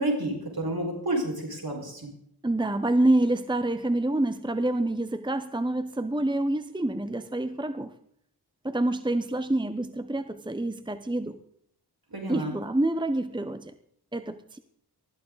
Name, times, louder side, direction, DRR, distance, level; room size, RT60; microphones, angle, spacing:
voice 1, 0.0-2.1 12.1-12.5, right 1 dB, 65° right, 0 dB, 5.4 m, -30 dB
voice 2, 2.4-7.9 8.6-11.4 12.3-13.7 14.1-14.6, right 1 dB, 10° right, 11 dB, 0.8 m, -27 dB
20.0 x 14.0 x 4.0 m, 0.68 s
wide cardioid pair, 55°, 39 cm